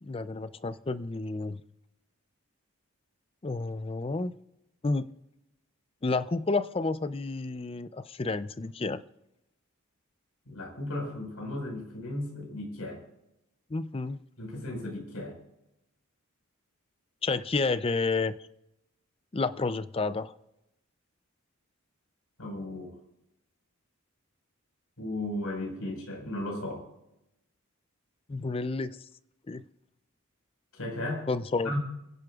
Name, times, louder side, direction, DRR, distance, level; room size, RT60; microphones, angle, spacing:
voice 1, 0.0-1.6 3.4-4.3 4.8-5.1 6.0-9.0 13.7-14.2 17.2-18.3 19.3-20.3 28.3-29.0 29.5-29.6 31.3-31.7, left 3 dB, 25° left, 14 dB, 0.4 m, -30 dB
voice 2, 10.5-13.0 14.4-15.4 22.4-22.9 25.0-26.9 30.7-31.3 31.6-31.8, left 1 dB, 85° left, 1 dB, 5.1 m, -35 dB
29.5 x 10.5 x 2.4 m, 0.88 s
head